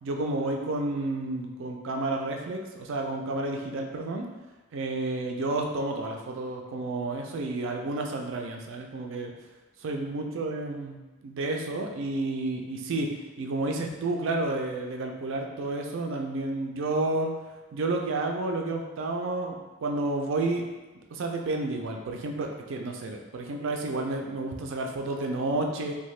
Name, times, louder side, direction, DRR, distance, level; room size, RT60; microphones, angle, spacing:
voice 1, 0.0-4.3 4.7-9.3 9.8-13.1 13.4-17.3 17.7-20.6 21.1-25.9, right 2 dB, 60° right, 2 dB, 0.4 m, -31 dB
2.7 x 2.2 x 3.1 m, 1.2 s
head